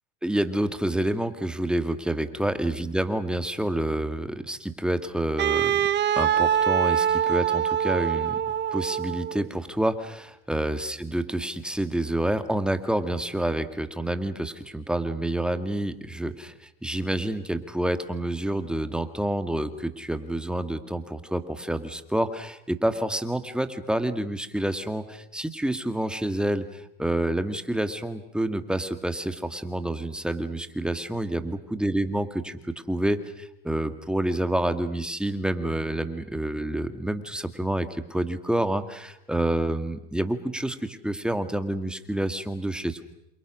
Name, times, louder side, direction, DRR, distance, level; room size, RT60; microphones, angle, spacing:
voice 1, 0.2-5.8 6.2-8.4 8.7-43.0, right 1 dB, 5° right, 10 dB, 2.1 m, -28 dB
Wind instrument woodwind instrument, 5.4-9.4, right 9 dB, 35° right, 1.6 m, -24 dB
28.0 x 28.0 x 6.4 m, 0.86 s
supercardioid pair, 105°, 31 cm